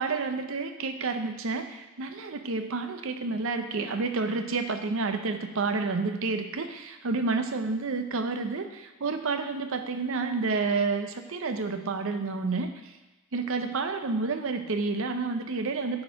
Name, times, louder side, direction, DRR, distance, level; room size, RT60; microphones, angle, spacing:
voice 1, 0.0-12.7 13.3-16.0, right 4 dB, 70° right, 7 dB, 0.7 m, -29 dB
9.5 x 4.3 x 4.7 m, 1.1 s
head